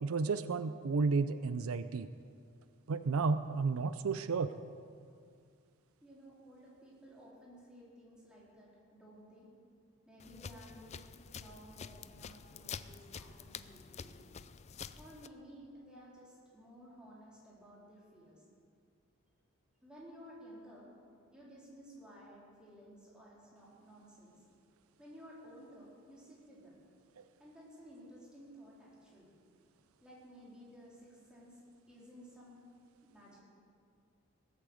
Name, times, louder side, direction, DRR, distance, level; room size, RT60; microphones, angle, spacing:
voice 1, 0.0-2.1 2.9-4.5, right 4 dB, 75° right, 12 dB, 0.5 m, -32 dB
voice 2, 6.0-9.5 10.1-11.0 11.3-14.2 15.0-18.4 19.8-20.9 21.3-24.4 25.0-26.8 27.4-29.3 30.0-31.6 31.9-32.7 33.0-33.4, equal, 5° right, -7 dB, 4.1 m, -55 dB
sound 1, 10.2-15.3, left 6 dB, 30° left, 0.4 m, -48 dB
18.5 x 8.6 x 7.8 m, 2.3 s
head